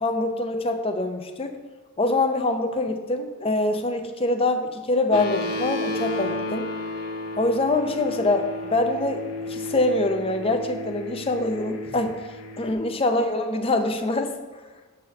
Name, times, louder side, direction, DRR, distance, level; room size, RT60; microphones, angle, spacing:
voice 1, 0.0-1.6 2.0-6.7 7.4-9.2 9.5-12.2 12.6-14.3, left 2 dB, 25° left, 7 dB, 0.5 m, -24 dB
sound 1, 5.1-12.7, left 2 dB, 85° left, 0.9 m, -33 dB
6.9 x 4.2 x 6.4 m, 1.3 s
head